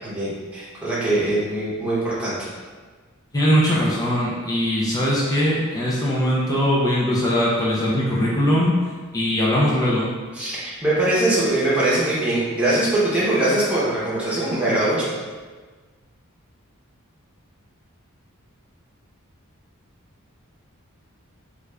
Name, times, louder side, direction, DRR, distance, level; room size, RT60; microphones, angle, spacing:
voice 1, 0.0-2.3 10.3-15.1, right 1 dB, 5° right, -9 dB, 0.9 m, -22 dB
voice 2, 3.3-8.7 9.1-10.1, equal, 15° left, -6 dB, 0.5 m, -20 dB
3.3 x 2.5 x 3.3 m, 1.4 s
head